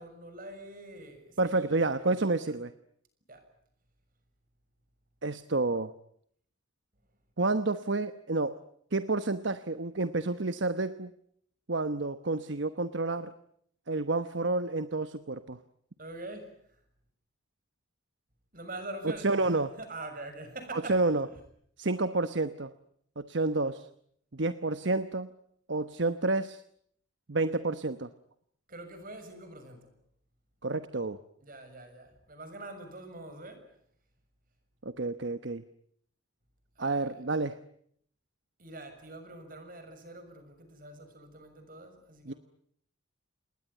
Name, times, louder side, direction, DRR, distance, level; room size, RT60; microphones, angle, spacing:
voice 1, 0.0-2.1 3.3-3.4 16.0-16.5 18.5-19.5 19.8-21.3 28.7-29.9 31.4-33.6 36.8-37.2 38.6-42.4, right 2 dB, 45° right, 8 dB, 6.5 m, -44 dB
voice 2, 1.4-2.7 5.2-5.9 7.4-8.6 8.9-11.1 11.7-13.3 13.9-15.6 19.0-19.8 20.7-21.3 21.8-22.7 23.2-23.9 24.3-25.3 25.7-26.6 27.3-28.1 30.6-31.2 34.8-35.6 36.8-37.6 42.3-42.4, right 3 dB, 65° right, 12 dB, 1.0 m, -29 dB
29.0 x 20.5 x 9.6 m, 0.68 s
head